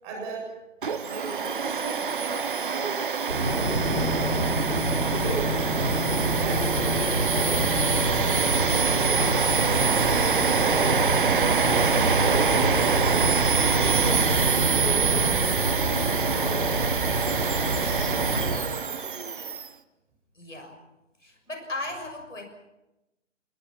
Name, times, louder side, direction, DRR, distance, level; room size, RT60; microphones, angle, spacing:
voice 1, 0.0-0.5 1.0-3.0 3.3-4.4 4.9-5.5 6.3-7.9 8.3-9.2 9.9-14.2 14.7-15.3 15.8-16.9, right 3 dB, 15° right, -1 dB, 7.0 m, -36 dB
Domestic sounds home sounds, 0.8-19.7, right 6 dB, 45° right, 1.0 m, -26 dB
sound 1, 3.3-18.6, right 1 dB, 75° right, 4.3 m, -27 dB
sound 2, 3.7-15.3, left 2 dB, 65° left, 6.0 m, -34 dB
voice 2, 20.3-20.8 21.2-22.4, left 2 dB, 80° left, 4 dB, 6.7 m, -36 dB
27.0 x 20.5 x 6.1 m, 0.97 s
figure-of-eight pair, 145°, 37 cm